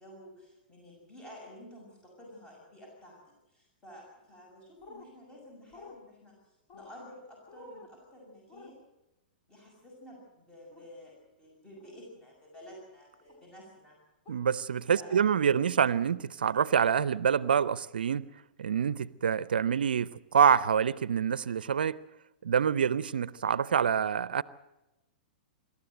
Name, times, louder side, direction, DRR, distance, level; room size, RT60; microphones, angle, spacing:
voice 1, 0.0-3.2 3.5-8.8 9.5-14.0 14.9-15.4, equal, 15° left, 6.5 m, -51 dB
sound 1, 4.8-5.1 5.7-6.0 6.7-6.9 7.5-7.9 8.5-8.7 10.7-10.9 11.8-12.0 13.3-13.4 14.3-14.4, left 2 dB, 35° left, 3.8 m, -50 dB
voice 2, 14.3-18.3 18.6-22.0 22.4-24.4, right 7 dB, 80° right, 0.6 m, -26 dB
26.0 x 13.5 x 7.8 m
hypercardioid pair, 115°, 5 cm